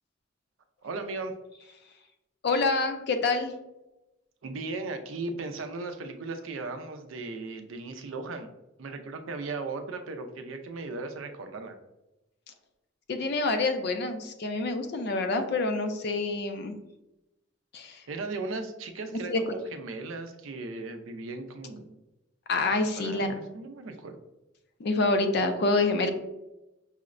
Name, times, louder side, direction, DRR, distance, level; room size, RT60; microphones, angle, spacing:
voice 1, 0.8-1.3 4.4-8.5 8.8-11.8 18.1-22.0 23.0-24.2, right 3 dB, 80° right, 7 dB, 0.4 m, -37 dB
voice 2, 2.4-3.5 13.1-16.8 17.7-18.0 19.3-19.4 22.5-23.3 24.8-26.1, left 3 dB, 55° left, 7 dB, 0.4 m, -27 dB
5.5 x 2.0 x 2.4 m, 0.96 s
head